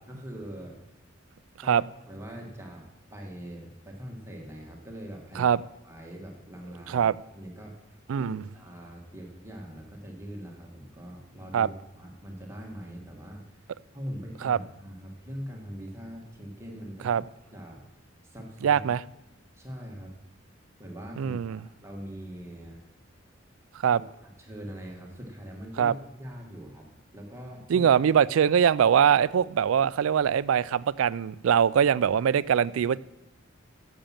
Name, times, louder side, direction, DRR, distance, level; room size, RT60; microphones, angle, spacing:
voice 1, 0.1-0.7 1.6-5.4 5.8-7.1 7.3-13.7 13.9-17.2 17.5-17.8 18.2-18.8 19.5-20.1 20.8-22.8 23.9-24.0 24.4-26.9 27.1-27.9, equal, 15° right, 1.6 m, -42 dB
voice 2, 8.1-8.4 11.5-11.7 14.4-14.6 17.0-17.2 18.6-19.0 21.2-21.6 23.8-24.0 25.8-25.9 27.7-33.0, right 8 dB, 85° right, 0.3 m, -22 dB
10.5 x 7.3 x 7.3 m
head